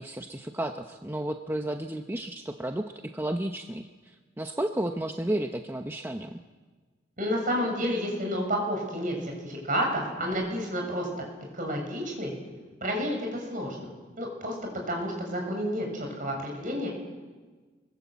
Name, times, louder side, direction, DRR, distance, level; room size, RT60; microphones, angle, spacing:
voice 1, 0.0-3.9 4.4-6.4, right 1 dB, 15° right, 4 dB, 0.9 m, -32 dB
voice 2, 7.2-11.1 11.5-12.3 12.8-13.9 14.2-14.6 14.9-16.9, equal, 50° right, 1 dB, 7.1 m, -30 dB
25.0 x 22.5 x 8.3 m, 1.4 s
head